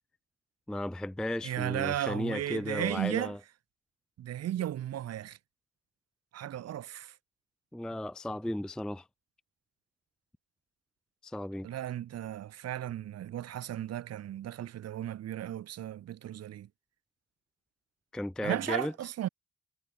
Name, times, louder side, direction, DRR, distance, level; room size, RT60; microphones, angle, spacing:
voice 1, 0.7-3.4 7.7-9.0 11.2-11.7 18.1-18.9, left 1 dB, ahead, 0.4 m, -35 dB
voice 2, 1.4-3.3 4.2-5.4 6.3-7.1 11.6-16.7 18.4-19.3, right 12 dB, 55° right, 0.8 m, -35 dB
cardioid pair, 90°, 30 cm